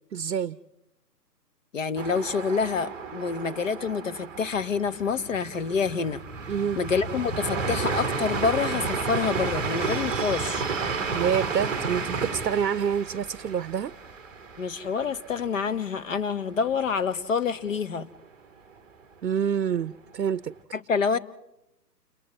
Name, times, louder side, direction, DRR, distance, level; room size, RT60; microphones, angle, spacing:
voice 1, 0.1-0.6 6.5-6.8 11.1-13.9 19.2-20.5, right 8 dB, 75° right, 17 dB, 0.6 m, -27 dB
voice 2, 1.7-6.2 6.8-10.6 14.6-18.1 20.7-21.2, left 5 dB, 50° left, 13 dB, 1.0 m, -27 dB
sound 1, 2.0-15.7 16.0-16.1 16.5-17.1, right 4 dB, ahead, 1.0 m, -32 dB
30.0 x 29.0 x 3.1 m, 0.88 s
figure-of-eight pair, 135°, 50 cm